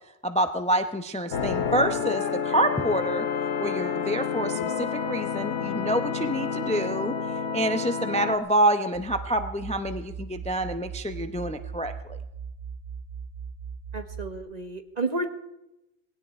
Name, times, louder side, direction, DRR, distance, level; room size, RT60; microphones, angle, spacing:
voice 1, 0.2-3.3 3.6-7.1 7.5-12.2, right 1 dB, 5° left, 8 dB, 0.7 m, -27 dB
sound 1, 1.3-8.4, left 6 dB, 75° left, 1.3 m, -29 dB
sound 2, 8.9-14.4, right 6 dB, 85° right, 3.6 m, -39 dB
voice 2, 13.9-15.3, right 2 dB, 35° right, 7 dB, 1.3 m, -31 dB
19.0 x 17.0 x 4.4 m, 0.91 s
omnidirectional pair, 1.2 m